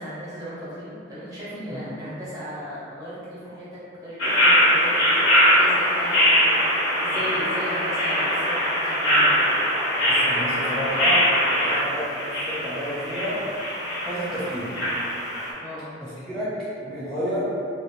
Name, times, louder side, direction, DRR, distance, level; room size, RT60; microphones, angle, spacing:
voice 1, 0.0-9.4 15.5-15.9, equal, 20° right, -10 dB, 0.7 m, -37 dB
sound 1, 4.2-15.5, equal, 85° left, 1.0 m, -22 dB
voice 2, 10.0-13.5 14.0-14.8 16.0-17.7, equal, 5° left, -13 dB, 0.3 m, -31 dB
2.5 x 2.0 x 2.7 m, 2.5 s
head